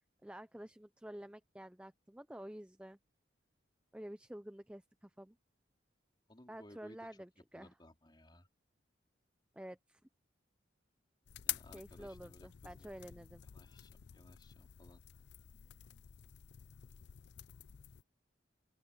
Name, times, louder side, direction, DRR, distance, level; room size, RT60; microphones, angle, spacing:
voice 1, 0.2-3.0 3.9-5.4 6.5-7.7 9.5-10.0 11.7-13.4, right 1 dB, 5° right, 0.6 m, -50 dB
voice 2, 6.3-7.1 7.5-8.5 11.5-13.1 13.5-15.0, left 1 dB, 25° left, 4.1 m, -60 dB
sound 1, 11.3-18.0, left 13 dB, 60° left, 0.4 m, -48 dB
open air
head